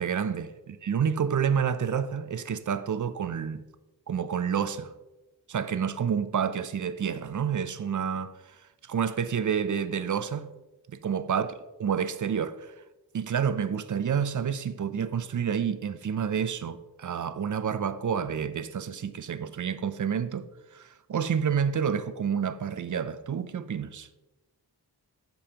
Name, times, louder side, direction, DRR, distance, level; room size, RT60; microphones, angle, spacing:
voice 1, 0.0-3.6 4.1-4.9 5.5-10.5 10.9-11.5 11.8-12.7 13.1-20.5 20.7-24.1, right 7 dB, 50° right, 0.5 m, -29 dB
11.5 x 5.3 x 2.9 m
wide cardioid pair, 100°, 39 cm